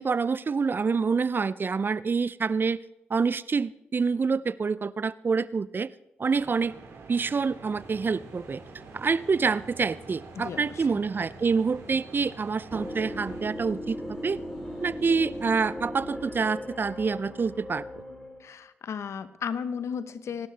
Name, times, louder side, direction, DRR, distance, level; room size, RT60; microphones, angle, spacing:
voice 1, 0.0-2.8 3.1-5.9 6.2-6.7 7.1-8.6 8.9-14.4 14.8-17.9, right 5 dB, 40° right, 19 dB, 0.5 m, -27 dB
sound 1, 6.3-13.4, right 4 dB, 60° right, 2.9 m, -47 dB
sound 2, 7.7-15.7, left 1 dB, 85° left, 4.4 m, -52 dB
voice 2, 10.3-11.0 18.4-20.5, left 7 dB, 60° left, 14 dB, 0.9 m, -35 dB
sound 3, 12.7-18.4, equal, 10° left, 7.1 m, -38 dB
24.5 x 12.0 x 3.3 m, 0.89 s
hypercardioid pair, 40°, 5 cm